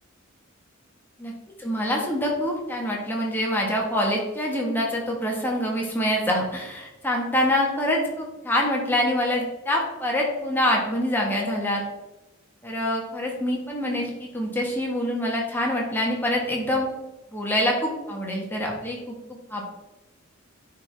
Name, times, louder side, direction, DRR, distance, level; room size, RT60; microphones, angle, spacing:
voice 1, 1.6-11.8 12.6-16.9 17.3-19.1 19.5-19.6, left 1 dB, 10° left, -2 dB, 1.5 m, -25 dB
9.8 x 4.8 x 3.5 m, 1.1 s
head